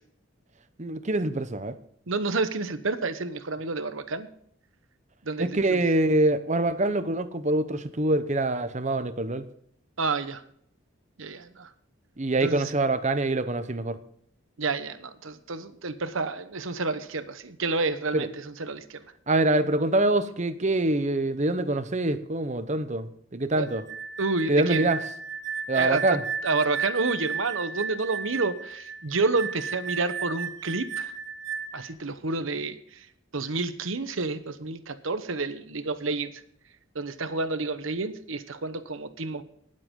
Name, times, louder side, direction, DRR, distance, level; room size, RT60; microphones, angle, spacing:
voice 1, 0.8-1.7 5.4-9.4 12.2-14.0 18.1-18.3 19.3-23.8 24.5-25.0 25.7-26.2, right 2 dB, 35° right, 11 dB, 0.8 m, -25 dB
voice 2, 2.1-4.3 5.3-5.8 10.0-10.4 11.2-11.7 12.4-12.7 14.6-19.0 23.6-23.7 24.2-24.9 25.7-26.2 26.4-31.1 31.7-32.8 33.3-36.3 36.9-39.4, right 3 dB, 75° right, 11 dB, 1.0 m, -29 dB
sound 1, 23.7-31.9, right 5 dB, 55° right, 1.5 m, -34 dB
19.0 x 7.7 x 3.7 m, 0.66 s
head